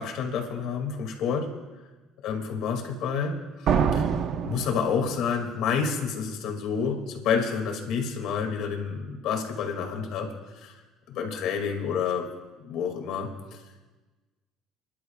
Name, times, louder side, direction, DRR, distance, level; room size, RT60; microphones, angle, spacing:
voice 1, 0.0-1.5 2.2-4.1 4.4-10.3 10.6-10.8 11.1-12.3 12.6-13.3, left 6 dB, 65° left, 3 dB, 2.2 m, -29 dB
sound 1, 3.7-5.5, right 7 dB, 50° right, 0.8 m, -26 dB
30.0 x 11.5 x 2.4 m, 1.2 s
cardioid pair, 135°, 0 cm